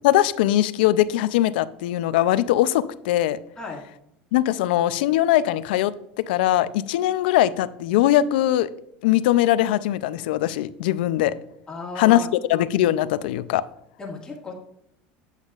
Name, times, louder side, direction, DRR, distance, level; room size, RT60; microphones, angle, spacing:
voice 1, 0.0-3.4 4.3-5.9 6.3-8.7 9.0-11.3 12.0-12.2 12.5-13.6, left 13 dB, 85° left, 16 dB, 0.4 m, -21 dB
voice 2, 11.7-12.3 14.0-14.5, left 3 dB, 15° left, -2 dB, 1.8 m, -34 dB
8.1 x 8.1 x 2.4 m, 0.80 s
supercardioid pair, 130°, 5 cm